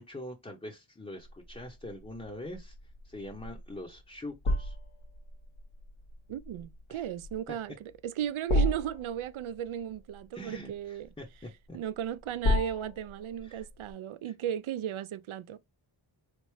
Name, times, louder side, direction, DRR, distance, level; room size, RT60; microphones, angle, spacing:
voice 1, 0.0-2.8 3.0-4.8 6.9-7.1 10.3-11.8 13.4-13.7 14.2-14.3, left 1 dB, 15° left, 0.7 m, -44 dB
sound 1, 1.2-13.9, left 1 dB, 85° left, 1.3 m, -35 dB
voice 2, 6.3-11.1 11.7-15.6, right 10 dB, 75° right, 0.5 m, -35 dB
4.1 x 3.3 x 3.1 m
wide cardioid pair, 80°, 49 cm